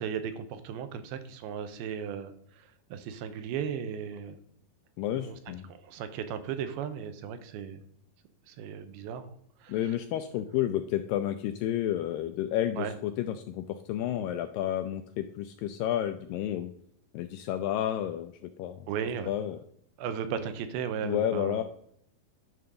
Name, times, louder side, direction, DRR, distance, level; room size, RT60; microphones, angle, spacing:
voice 1, 0.0-2.3 2.9-4.4 5.2-5.3 5.8-7.8 8.5-9.3 9.6-9.7 12.8-12.9 18.9-19.3 20.0-21.6, right 8 dB, 90° right, 9 dB, 2.7 m, -35 dB
voice 2, 5.0-5.7 9.7-16.7 17.1-18.9 19.3-19.6 21.0-21.6, left 11 dB, 85° left, 8 dB, 2.0 m, -31 dB
11.0 x 3.8 x 6.8 m, 0.68 s
omnidirectional pair, 4.4 m